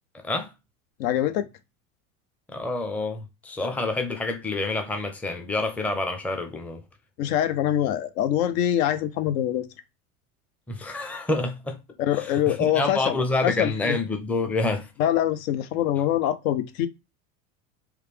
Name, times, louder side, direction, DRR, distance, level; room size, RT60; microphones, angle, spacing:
voice 1, 1.0-1.5 7.2-9.7 12.0-13.2 13.4-14.0 15.0-16.9, left 11 dB, 70° left, 0.6 m, -24 dB
voice 2, 2.5-6.8 10.7-11.8 12.1-14.9, left 2 dB, 5° left, 0.5 m, -28 dB
3.3 x 2.3 x 3.2 m
hypercardioid pair, 95°, 43 cm